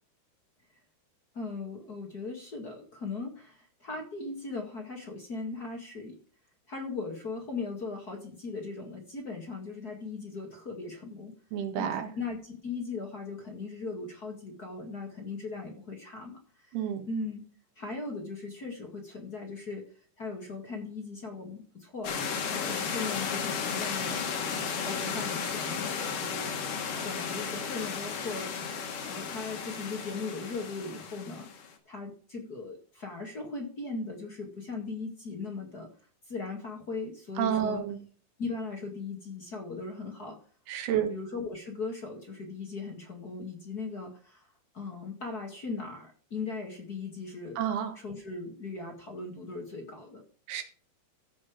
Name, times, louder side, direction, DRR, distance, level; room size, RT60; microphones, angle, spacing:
voice 1, 1.3-6.2 6.7-11.3 11.8-11.9 12.1-16.7 17.1-17.4 17.7-19.9 20.2-22.1 22.5-28.5 29.1-31.5 31.8-35.9 36.3-37.8 38.4-40.4 41.0-44.5 44.7-47.6 47.9-50.2, left 3 dB, 40° left, 2 dB, 1.5 m, -38 dB
voice 2, 11.5-12.1 16.7-17.1 37.4-38.0 40.7-41.1 47.6-47.9 50.5-50.6, right 9 dB, 70° right, 6 dB, 3.4 m, -29 dB
sound 1, 22.0-31.7, left 6 dB, 60° left, 3.0 m, -34 dB
15.0 x 5.5 x 5.1 m, 0.43 s
omnidirectional pair, 4.8 m